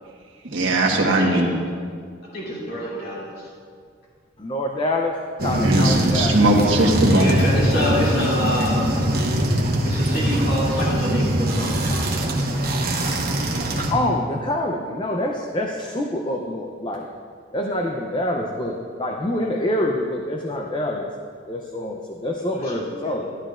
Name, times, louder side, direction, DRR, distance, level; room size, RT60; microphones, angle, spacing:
voice 1, 0.5-1.5 5.6-7.4, right 1 dB, 80° right, 0 dB, 1.4 m, -19 dB
voice 2, 1.2-1.6 2.3-3.3 7.1-9.0 9.8-13.2 22.4-23.1, left 1 dB, 50° left, -7 dB, 2.8 m, -28 dB
voice 3, 4.4-5.1 5.4-6.4 13.9-17.1 17.5-21.2 21.5-23.4, left 1 dB, 25° left, 1 dB, 0.6 m, -26 dB
sound 1, 5.4-13.9, right 1 dB, 50° right, 1.1 m, -22 dB
13.0 x 11.5 x 2.5 m, 2.1 s
head